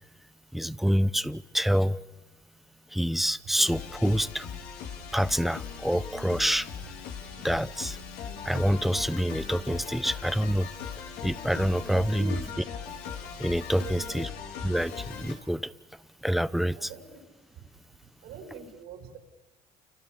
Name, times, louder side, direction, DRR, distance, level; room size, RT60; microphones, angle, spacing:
voice 1, 0.5-2.0 2.9-4.5 5.1-6.7 7.4-8.0 8.4-10.7 11.2-12.3 13.4-14.3 14.6-15.7 16.2-16.9, equal, ahead, 17 dB, 0.9 m, -27 dB
sound 1, 3.6-15.3, left 7 dB, 75° left, 4.4 m, -39 dB
voice 2, 11.8-12.4 13.8-14.2 16.7-17.0 17.6-17.7 18.2-19.2, right 4 dB, 70° right, 5 dB, 6.3 m, -42 dB
29.5 x 26.0 x 7.2 m, 1.1 s
supercardioid pair, 90°, 17 cm